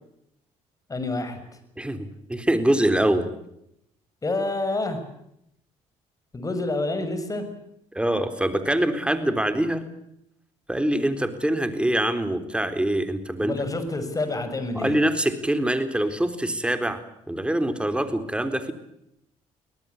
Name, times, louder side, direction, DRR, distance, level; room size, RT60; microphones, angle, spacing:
voice 1, 0.9-1.4 4.2-5.0 6.3-7.5 13.4-14.9, left 2 dB, 25° left, 9 dB, 6.7 m, -28 dB
voice 2, 1.8-3.3 7.9-9.8 10.7-13.5 14.7-17.0 17.3-18.7, right 1 dB, 10° right, 9 dB, 3.9 m, -24 dB
23.5 x 19.0 x 8.4 m, 0.77 s
supercardioid pair, 80°, 13 cm